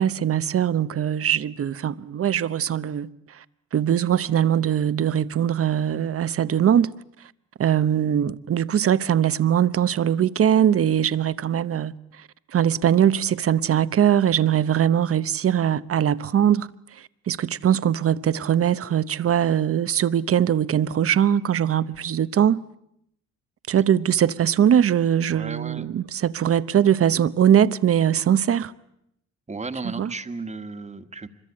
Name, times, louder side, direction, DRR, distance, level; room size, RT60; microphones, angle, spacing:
voice 1, 0.0-3.4 3.7-6.9 7.6-11.9 12.5-16.7 17.0-22.6 23.7-28.7 29.8-30.1, right 9 dB, 50° right, 0.9 m, -21 dB
voice 2, 25.3-25.8 29.5-31.3, right 3 dB, 20° right, 1.6 m, -34 dB
25.0 x 22.0 x 8.7 m
cardioid pair, 90°, 30 cm